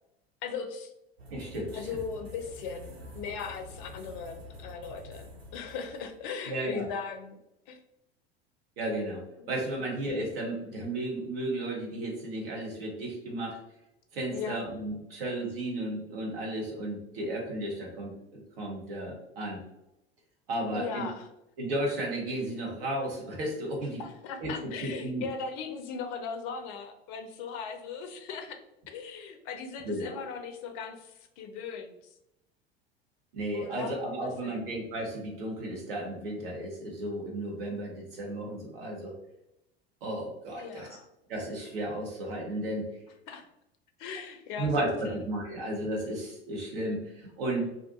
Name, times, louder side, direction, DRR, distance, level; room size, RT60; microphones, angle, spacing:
voice 1, 0.4-0.9 1.7-7.4 7.7-7.8 9.7-9.8 14.3-14.6 20.7-21.3 24.0-28.6 28.9-32.0 33.5-34.0 34.4-34.7 40.6-41.1 43.3-43.5 44.0-45.3, left 5 dB, 45° left, 7 dB, 0.4 m, -38 dB
sound 1, 1.2-6.2, left 1 dB, 85° right, 0.5 m, -47 dB
voice 2, 1.3-2.0 6.5-6.8 8.8-9.2 9.5-13.6 14.1-19.6 20.5-21.1 21.6-24.0 24.4-25.2 29.8-30.2 33.3-39.1 40.0-40.9 41.3-42.8 44.6-47.7, right 1 dB, 65° right, -1 dB, 1.0 m, -34 dB
2.5 x 2.2 x 2.5 m, 0.84 s
figure-of-eight pair, 75°, 30 cm